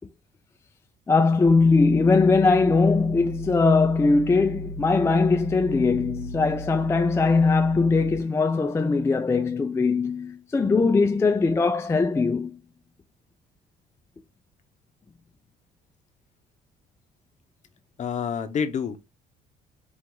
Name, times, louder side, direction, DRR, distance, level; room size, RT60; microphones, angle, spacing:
voice 1, 1.1-12.6, left 4 dB, 15° left, 0.4 m, -21 dB
sound 1, 1.5-8.2, right 1 dB, 70° left, 0.9 m, -37 dB
voice 2, 18.0-19.1, left 7 dB, 45° left, 0.8 m, -28 dB
4.5 x 2.5 x 3.8 m
cardioid pair, 110°, 17 cm